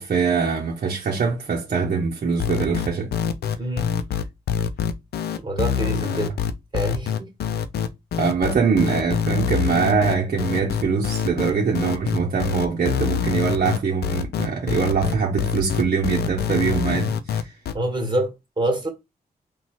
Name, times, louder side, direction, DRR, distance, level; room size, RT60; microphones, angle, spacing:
voice 1, 0.0-3.1 8.2-17.5, right 5 dB, 60° right, 0.9 m, -23 dB
sound 1, 2.4-17.7, left 8 dB, 85° left, 0.5 m, -25 dB
voice 2, 3.6-3.9 5.4-6.3 6.7-7.3 17.7-18.9, right 1 dB, 30° right, 1.6 m, -26 dB
4.0 x 2.4 x 4.5 m
cardioid pair, 75°, 16 cm